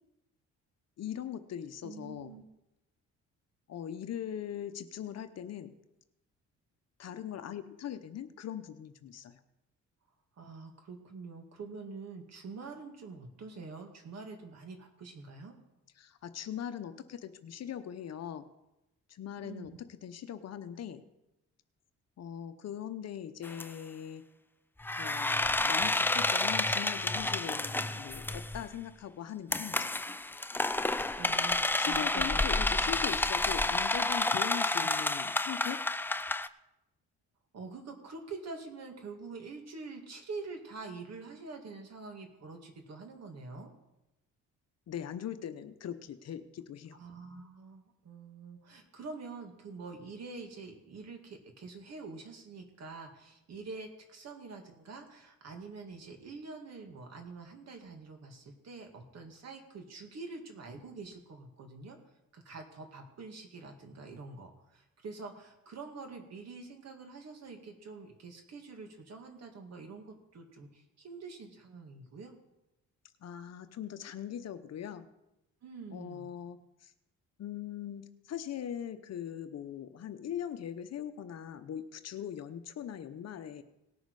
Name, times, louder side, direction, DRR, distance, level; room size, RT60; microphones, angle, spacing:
voice 1, 1.0-2.4 3.7-5.7 7.0-9.4 16.0-18.5 19.1-19.7 20.0-21.0 22.2-24.3 25.0-29.9 31.8-35.8 44.9-47.0 73.2-75.1 75.9-76.9 77.4-83.6, left 9 dB, 55° left, 9 dB, 0.8 m, -40 dB
voice 2, 1.8-2.4 10.4-15.6 19.4-19.7 31.1-32.4 34.7-34.9 37.5-43.7 46.9-62.0 62.3-72.3 75.6-76.3, right 4 dB, 60° right, 4 dB, 2.3 m, -46 dB
sound 1, 23.4-23.6 24.8-28.6 29.5-36.5, left 2 dB, 5° left, 0.4 m, -30 dB
18.5 x 6.4 x 4.8 m, 0.90 s
cardioid pair, 90°, 30 cm